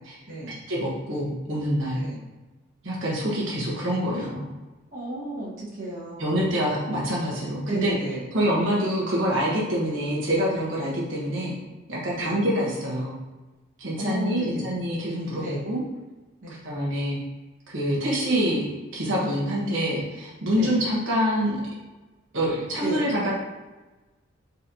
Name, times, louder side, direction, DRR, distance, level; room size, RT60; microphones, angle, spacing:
voice 1, 0.7-2.0 2.8-4.5 6.2-7.9 8.3-11.6 11.9-13.2 13.8-15.8 16.5-17.2 17.7-18.6 18.9-21.6 22.3-23.3, equal, 70° right, -5 dB, 1.2 m, -26 dB
voice 2, 4.1-4.5 4.9-6.6 7.7-8.3 12.1-12.4 14.0-14.7 15.3-15.6 16.4-16.6 20.6-20.7 22.8-23.0, right 1 dB, 45° right, -7 dB, 1.3 m, -33 dB
4.3 x 4.1 x 2.7 m, 1.2 s
head